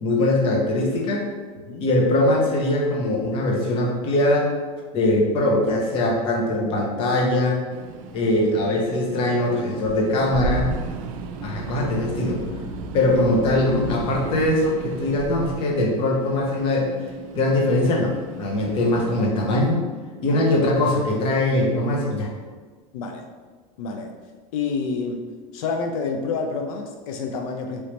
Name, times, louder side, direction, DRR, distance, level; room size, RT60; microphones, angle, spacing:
voice 1, 0.0-1.2 1.8-4.5 4.9-7.6 8.1-10.7 11.4-12.4 12.9-16.9 17.3-19.8 20.2-22.3, left 1 dB, 30° left, -1 dB, 0.6 m, -21 dB
sound 1, 7.7-19.2, right 3 dB, 75° right, 0.4 m, -34 dB
voice 2, 22.9-23.3 23.8-24.1 24.5-25.3 25.5-27.8, left 4 dB, 80° left, 4 dB, 0.4 m, -28 dB
3.1 x 2.9 x 3.0 m, 1.5 s
supercardioid pair, 160°, 18 cm